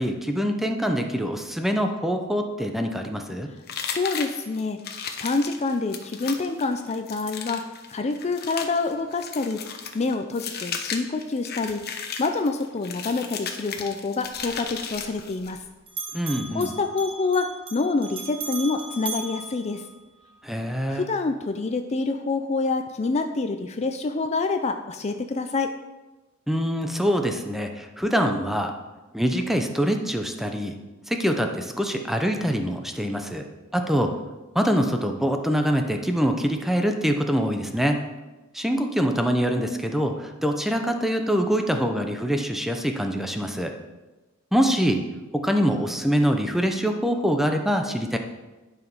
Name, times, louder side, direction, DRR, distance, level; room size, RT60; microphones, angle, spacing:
voice 1, 0.0-3.5 16.1-16.7 20.4-21.1 26.5-28.7 29.1-30.8 31.1-33.5 33.7-34.2 34.5-38.0 38.5-43.7 44.5-45.1 45.3-48.2, equal, ahead, 4 dB, 0.7 m, -24 dB
sound 1, 3.7-15.6, left 6 dB, 50° left, 0.9 m, -35 dB
voice 2, 3.8-7.6 7.9-9.6 9.9-11.8 12.2-15.6 16.5-19.8 20.9-25.7, left 3 dB, 35° left, 7 dB, 0.5 m, -27 dB
Bell, 14.2-15.6 15.9-20.4, right 4 dB, 25° right, 1.1 m, -38 dB
11.0 x 5.0 x 5.4 m, 1.1 s
head